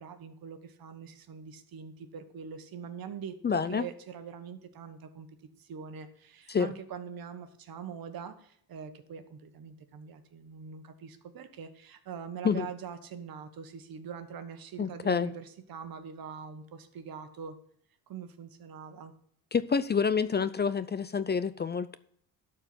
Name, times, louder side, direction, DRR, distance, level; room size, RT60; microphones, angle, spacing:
voice 1, 0.0-5.3 5.6-17.6 18.1-19.1, right 7 dB, 65° right, 9 dB, 1.5 m, -43 dB
voice 2, 3.4-3.9 6.5-6.7 12.4-12.7 14.8-15.3 19.5-22.0, left 6 dB, 25° left, 15 dB, 0.5 m, -28 dB
12.0 x 4.6 x 7.8 m, 0.65 s
cardioid pair, 115°, 38 cm